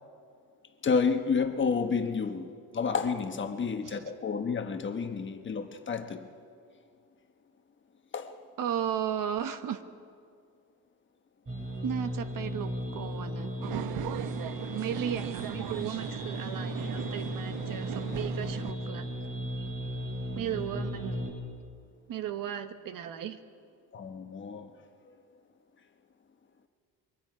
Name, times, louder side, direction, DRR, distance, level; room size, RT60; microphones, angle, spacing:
voice 1, 0.8-6.3 8.1-8.3 23.9-24.7, left 5 dB, 30° left, 1.2 m, -30 dB
voice 2, 8.6-9.8 11.8-13.5 14.6-19.1 20.3-21.3 22.1-23.4, right 9 dB, 60° right, 1.2 m, -35 dB
sound 1, 11.5-21.3, equal, 35° right, 6.6 m, -36 dB
sound 2, 13.6-18.7, right 12 dB, 75° right, 0.8 m, -38 dB
28.0 x 23.0 x 5.0 m
cardioid pair, 150°, 37 cm